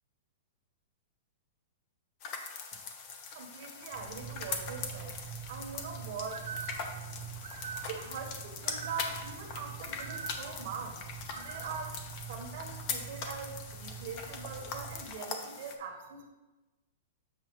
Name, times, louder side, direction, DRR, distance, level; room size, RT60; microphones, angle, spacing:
sound 1, 2.2-15.8, left 5 dB, 40° left, 0.8 m, -41 dB
voice 1, 3.3-5.2 5.5-6.5 7.9-11.0 11.3-16.3, right 5 dB, 55° right, 2 dB, 1.2 m, -42 dB
sound 2, 3.9-15.1, right 7 dB, 20° right, 0.8 m, -46 dB
Bird, 6.3-12.2, right 7 dB, 80° right, 0.5 m, -46 dB
7.6 x 5.9 x 3.1 m, 1.1 s
hypercardioid pair, 150°, 0 cm